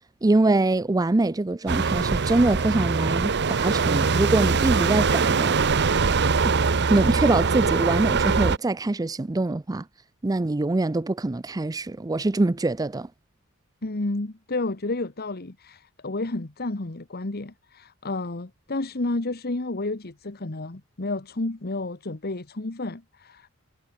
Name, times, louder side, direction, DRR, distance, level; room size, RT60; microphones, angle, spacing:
voice 1, 0.2-5.6 6.9-9.9 10.2-13.1, right 2 dB, 15° right, 0.4 m, -24 dB
sound 1, 1.7-8.6, right 4 dB, 55° right, 0.9 m, -22 dB
voice 2, 13.8-23.5, left 2 dB, 50° left, 1.3 m, -31 dB
head